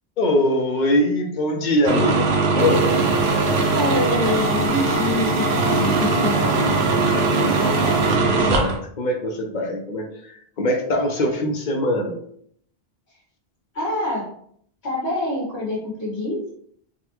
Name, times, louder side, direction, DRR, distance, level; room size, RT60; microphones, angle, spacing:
voice 1, 0.2-2.8 7.1-12.2, left 1 dB, 55° left, 3 dB, 0.7 m, -23 dB
sound 1, 1.9-8.8, right 4 dB, 75° right, 0.8 m, -20 dB
sound 2, 2.6-8.2, left 1 dB, 30° right, 0.5 m, -28 dB
voice 2, 3.7-6.5 13.7-14.3 14.8-16.5, left 1 dB, 90° left, -6 dB, 1.3 m, -26 dB
3.6 x 2.2 x 2.9 m, 0.65 s
omnidirectional pair, 1.1 m